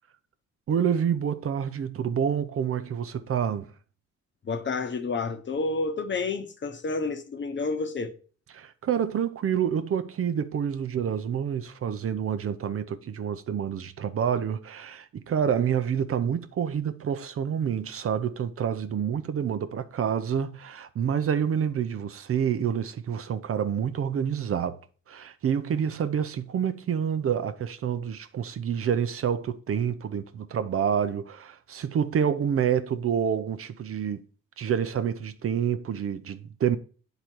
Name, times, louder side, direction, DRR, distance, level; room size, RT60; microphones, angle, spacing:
voice 1, 0.7-3.7 8.5-24.8 25.1-34.2 34.6-36.8, right 8 dB, 50° right, 0.6 m, -28 dB
voice 2, 4.4-8.1, left 3 dB, 40° left, 1.0 m, -30 dB
8.7 x 3.9 x 4.5 m
cardioid pair, 90°, 30 cm